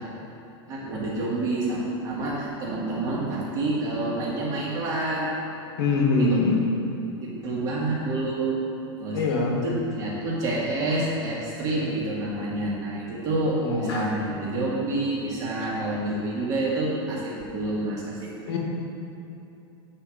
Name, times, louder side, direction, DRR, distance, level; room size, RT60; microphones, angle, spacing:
voice 1, 0.7-5.3 6.2-6.4 7.2-8.5 9.0-9.2 9.6-18.3, right 2 dB, 25° right, -5 dB, 1.7 m, -28 dB
voice 2, 5.8-6.6 9.1-9.6 13.6-14.1 15.6-15.7 18.5-18.6, left 3 dB, 65° left, 0 dB, 1.5 m, -23 dB
7.9 x 4.4 x 6.3 m, 2.9 s
supercardioid pair, 170°, 15 cm